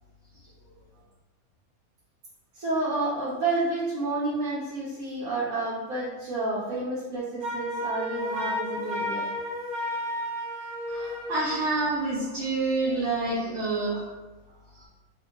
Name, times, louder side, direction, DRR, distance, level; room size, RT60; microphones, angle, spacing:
voice 1, 2.5-9.2, right 2 dB, 80° right, -8 dB, 1.2 m, -30 dB
Wind instrument woodwind instrument, 7.4-11.4, left 1 dB, 40° right, 1.1 m, -32 dB
voice 2, 10.9-14.0, right 3 dB, 60° right, -6 dB, 0.9 m, -27 dB
2.8 x 2.5 x 3.6 m, 1.2 s
omnidirectional pair, 1.5 m